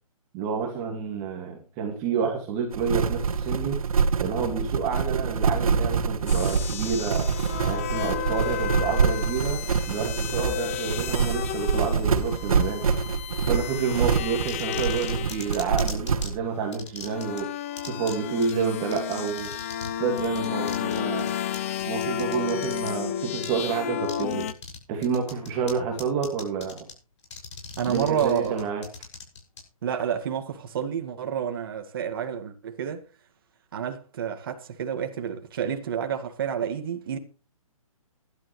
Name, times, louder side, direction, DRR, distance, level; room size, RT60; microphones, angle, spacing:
voice 1, 0.3-3.8 4.2-7.3 7.6-13.0 13.4-17.5 17.8-19.5 20.0-21.3 21.9-24.5 24.9-26.8 27.9-28.8, right 6 dB, 20° right, 2.1 m, -29 dB
sound 1, 2.7-16.4, right 5 dB, 75° right, 2.1 m, -26 dB
sound 2, 6.3-15.8 16.6-24.5, left 11 dB, 25° left, 0.7 m, -33 dB
sound 3, 14.5-16.3 16.7-17.4 17.8-18.1 18.4-18.5 18.9-19.9 20.2-22.9 23.4-23.5 24.0-24.8 25.0-25.7 26.0-26.9 27.2-29.6, left 5 dB, 50° left, 6.6 m, -39 dB
voice 2, 27.8-28.7 29.8-33.0 33.7-37.2, right 8 dB, 40° right, 2.0 m, -29 dB
19.5 x 12.0 x 3.2 m
hypercardioid pair, 165°, 18 cm